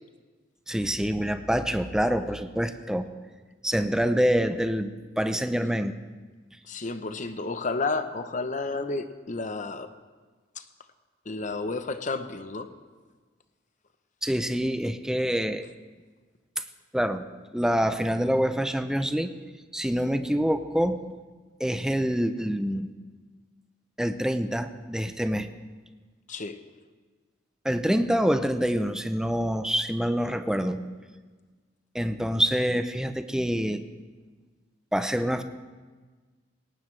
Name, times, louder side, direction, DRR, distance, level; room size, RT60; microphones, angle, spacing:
voice 1, 0.7-3.1 3.6-5.9 14.2-15.7 16.6-16.7 16.9-17.3 17.5-19.3 19.7-21.2 21.6-22.9 24.0-25.5 27.6-30.8 31.9-33.8 34.9-35.4, equal, 5° right, 9 dB, 0.6 m, -26 dB
voice 2, 6.7-9.9 10.6-10.7 11.3-12.7 26.3-26.6, left 3 dB, 40° left, 9 dB, 0.8 m, -31 dB
18.5 x 18.0 x 3.3 m, 1.4 s
head